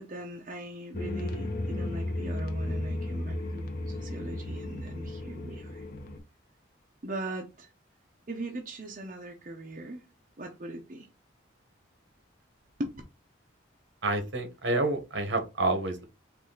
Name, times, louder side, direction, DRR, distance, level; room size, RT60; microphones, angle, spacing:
voice 1, 0.0-5.8 7.0-7.7 8.3-10.0 10.4-11.1 12.8-13.0, right 1 dB, 40° right, 0.7 m, -40 dB
sound 1, 0.9-6.2, left 1 dB, 50° left, 0.8 m, -34 dB
voice 2, 14.0-16.0, right 2 dB, 70° right, 1.2 m, -28 dB
4.7 x 2.5 x 3.8 m
head